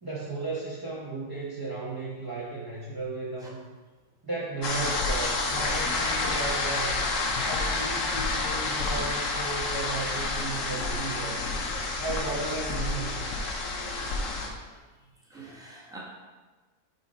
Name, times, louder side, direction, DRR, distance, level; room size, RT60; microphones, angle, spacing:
voice 1, 0.0-3.6 4.2-7.0 7.4-11.5 12.0-13.3, right 3 dB, 20° right, -7 dB, 0.7 m, -35 dB
sound 1, 4.6-14.5, left 3 dB, 60° left, 1.1 m, -29 dB
voice 2, 15.3-16.0, right 2 dB, 5° right, -4 dB, 1.0 m, -47 dB
5.6 x 5.0 x 4.1 m, 1.3 s
omnidirectional pair, 1.6 m